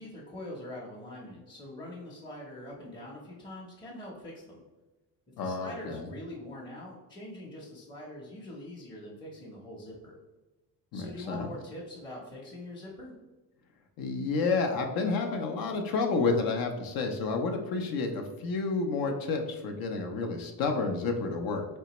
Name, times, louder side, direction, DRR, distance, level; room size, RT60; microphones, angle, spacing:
voice 1, 0.0-4.6 5.4-10.2 10.9-13.1, left 1 dB, 15° left, -4 dB, 0.7 m, -43 dB
voice 2, 5.4-6.1 10.9-11.5 14.0-21.7, left 4 dB, 70° left, 4 dB, 0.6 m, -30 dB
3.9 x 3.3 x 2.9 m, 1.1 s
cardioid pair, 150°, 36 cm